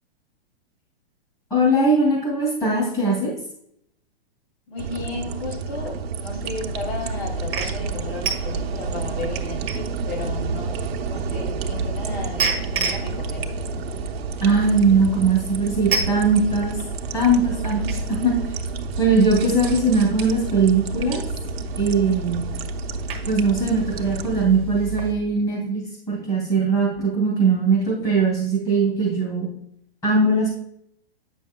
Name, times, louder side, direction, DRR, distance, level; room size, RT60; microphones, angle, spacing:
voice 1, 1.5-3.3 14.4-16.8 17.1-18.3 19.0-21.2 21.8-22.4 23.3-29.5 30.0-30.5, right 3 dB, 10° left, -3 dB, 2.6 m, -20 dB
voice 2, 4.7-10.7 11.0-13.6, left 3 dB, 75° left, 2 dB, 2.7 m, -34 dB
sound 1, 4.8-24.5, right 6 dB, 75° right, 0.8 m, -31 dB
sound 2, 6.3-25.1, right 2 dB, 20° right, 1.1 m, -31 dB
8.5 x 6.2 x 2.2 m, 0.71 s
hypercardioid pair, 160°, 31 cm